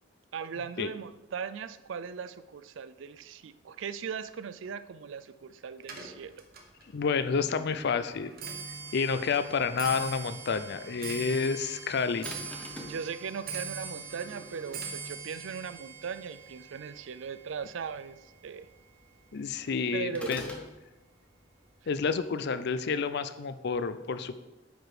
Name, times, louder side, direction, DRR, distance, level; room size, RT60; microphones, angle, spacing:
voice 1, 0.3-6.3 12.9-18.7 19.9-20.3, right 6 dB, 70° right, 13 dB, 0.4 m, -38 dB
Clock, 5.8-19.2 19.5-20.0 20.8-20.9 21.2-21.6 21.8-21.9, right 5 dB, 50° right, 1.2 m, -43 dB
voice 2, 6.9-8.3 8.9-12.3 19.3-20.5 21.9-24.4, left 5 dB, 60° left, 12 dB, 0.5 m, -29 dB
sound 1, 12.2-13.0 20.1-20.7, left 1 dB, 5° left, 1.0 m, -41 dB
8.9 x 4.8 x 4.9 m, 1.0 s
head